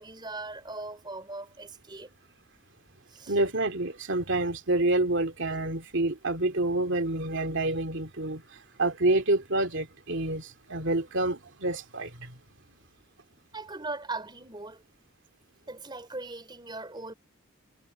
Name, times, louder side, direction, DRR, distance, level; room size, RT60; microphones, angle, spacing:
voice 1, 0.0-2.1 3.1-3.3 13.5-14.8 15.7-17.1, right 3 dB, 20° right, 4.5 m, -39 dB
voice 2, 3.3-8.4 8.8-12.3, right 2 dB, 60° right, 2.9 m, -28 dB
head